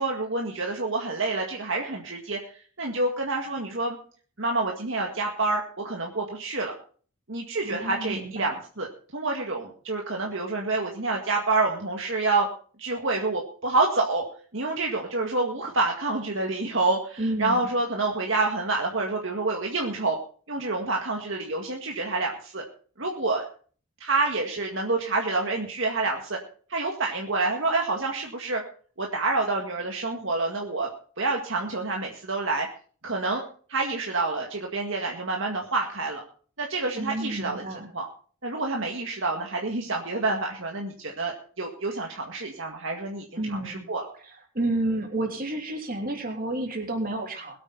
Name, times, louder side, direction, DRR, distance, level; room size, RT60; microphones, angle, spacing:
voice 1, 0.0-4.0 4.4-6.7 7.3-8.9 9.1-12.5 12.8-14.2 14.5-20.2 20.5-22.6 23.0-23.5 24.0-26.4 26.7-28.6 29.0-30.9 31.2-32.7 33.0-33.4 33.7-36.2 36.6-37.6 37.9-38.1 38.4-44.1, right 3 dB, 60° right, 0 dB, 2.0 m, -28 dB
voice 2, 7.6-8.5 17.2-17.7 37.0-37.9 43.4-43.9 44.2-47.6, right 1 dB, 40° right, 3 dB, 3.2 m, -30 dB
21.5 x 8.8 x 4.1 m, 0.43 s
head